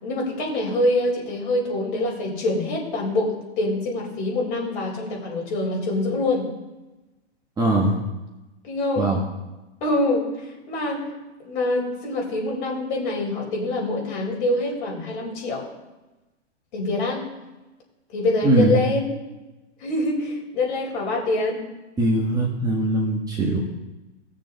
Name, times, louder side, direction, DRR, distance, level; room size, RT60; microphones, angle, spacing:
voice 1, 0.0-6.5 8.6-9.1 9.8-11.1 11.4-15.6 16.7-17.3 18.1-19.1 19.8-21.6, left 2 dB, 45° left, -1 dB, 4.3 m, -25 dB
voice 2, 7.6-8.0 9.0-9.2 18.4-18.8 22.0-23.6, right 1 dB, 10° right, -2 dB, 1.4 m, -21 dB
19.0 x 6.8 x 4.0 m, 1.1 s
hypercardioid pair, 140°, 35 cm